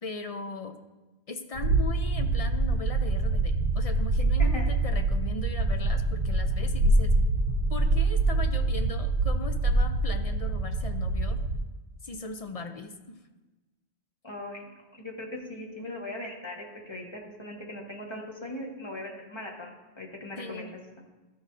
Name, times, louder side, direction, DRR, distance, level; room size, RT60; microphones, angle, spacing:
voice 1, 0.0-0.8 1.3-7.1 7.7-11.4 12.0-13.2 20.4-20.8, left 3 dB, 45° left, 6 dB, 0.5 m, -39 dB
sound 1, 1.5-11.6, right 2 dB, 85° right, 0.9 m, -25 dB
voice 2, 14.2-20.7, left 1 dB, 25° left, -2 dB, 1.5 m, -39 dB
13.0 x 6.2 x 2.7 m, 1.1 s
omnidirectional pair, 1.1 m